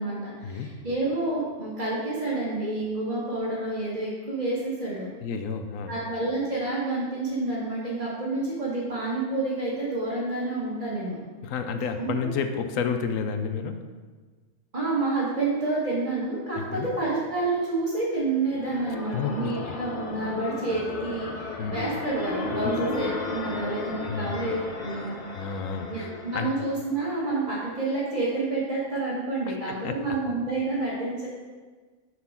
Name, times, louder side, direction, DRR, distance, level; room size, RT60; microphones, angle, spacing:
voice 1, 0.0-5.1 5.9-11.2 12.0-12.3 14.7-25.2 25.9-31.3, right 2 dB, 30° right, -10 dB, 1.5 m, -29 dB
voice 2, 5.2-5.9 11.4-13.8 16.6-16.9 19.1-19.8 21.6-21.8 22.6-22.8 24.1-24.4 25.3-26.1 26.3-26.5 29.5-29.6 29.8-30.0, left 6 dB, 70° left, 7 dB, 1.0 m, -30 dB
Voices in the Hall, 18.2-27.0, left 3 dB, 35° left, 0.6 m, -35 dB
6.7 x 4.2 x 5.5 m, 1.4 s
omnidirectional pair, 1.5 m